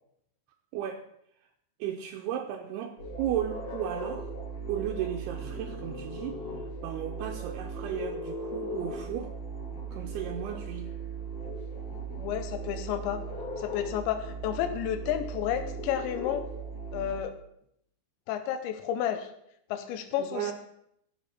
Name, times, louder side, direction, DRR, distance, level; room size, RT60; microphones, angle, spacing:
voice 1, 1.8-4.3 4.7-6.4 6.8-9.3 9.9-11.0 20.2-20.5, right 10 dB, 80° right, 3 dB, 2.5 m, -34 dB
sound 1, 3.0-17.2, right 2 dB, 40° left, 2.2 m, -38 dB
voice 2, 12.2-13.2 13.6-16.5 16.9-17.4 18.3-19.3 19.7-20.5, left 10 dB, 90° left, 9 dB, 3.1 m, -31 dB
14.5 x 6.6 x 4.2 m, 0.74 s
omnidirectional pair, 5.0 m